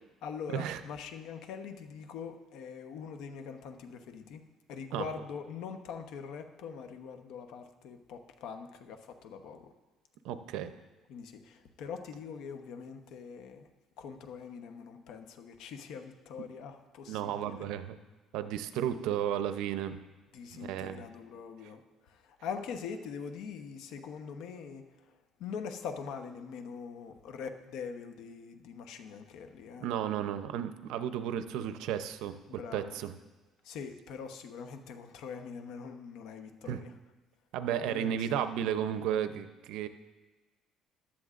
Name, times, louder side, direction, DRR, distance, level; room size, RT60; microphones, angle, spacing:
voice 1, 0.2-4.4 4.7-9.7 11.1-13.7 14.0-17.6 20.3-29.9 32.5-33.0 33.6-36.9 37.8-38.6, left 6 dB, 75° left, 7 dB, 0.9 m, -43 dB
voice 2, 10.2-10.7 17.1-18.0 18.3-20.0 20.5-21.0 29.8-33.1 36.7-36.8 37.5-39.9, right 9 dB, 85° right, 10 dB, 0.6 m, -33 dB
15.0 x 11.0 x 2.5 m, 1.2 s
cardioid pair, 150°, 0 cm